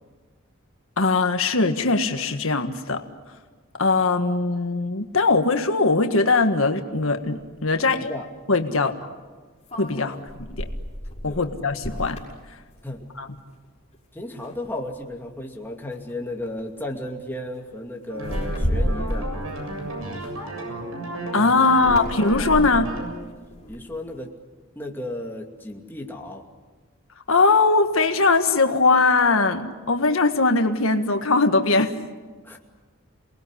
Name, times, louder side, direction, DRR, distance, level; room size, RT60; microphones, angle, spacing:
voice 1, 1.0-3.0 3.8-8.1 8.5-8.9 9.7-10.7 11.2-12.2 13.2-13.3 21.3-22.9 27.3-31.9, left 3 dB, 75° left, 6 dB, 1.7 m, -20 dB
sound 1, 7.4-7.5 9.7-13.3 13.6-14.0 14.4-15.1 15.9-16.1 16.4-16.8 18.1-20.8 21.7-24.1, equal, 30° left, 5.7 m, -32 dB
voice 2, 7.8-8.3 8.7-8.8 10.0-10.3 11.3-11.5 12.8-13.0 14.1-19.3 21.8-22.0 23.7-24.3 24.7-26.5 32.4-32.6, left 1 dB, 10° left, 1 dB, 2.5 m, -34 dB
sound 2, 18.1-23.1, right 1 dB, 85° right, 7.4 m, -33 dB
28.5 x 20.0 x 10.0 m, 1.4 s
head